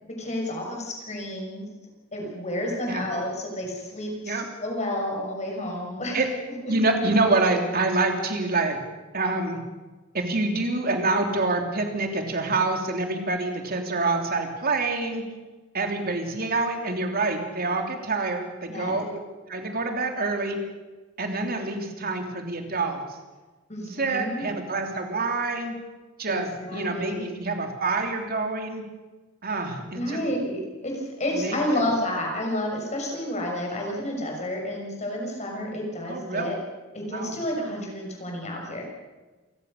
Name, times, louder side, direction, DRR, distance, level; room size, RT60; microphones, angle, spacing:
voice 1, 0.0-1.7 2.1-6.2 6.6-6.7 18.7-19.0 23.7-24.5 26.3-27.3 29.9-36.6 36.9-38.8, left 1 dB, 35° left, 0 dB, 6.3 m, -30 dB
voice 2, 6.6-8.8 9.1-9.6 10.1-15.2 15.7-19.2 19.5-20.6 21.2-23.2 24.0-25.7 26.2-28.8 29.4-30.2 31.3-31.8 36.1-36.6 37.1-37.4, right 3 dB, 45° right, 4 dB, 3.3 m, -26 dB
28.5 x 16.0 x 6.7 m, 1.2 s
head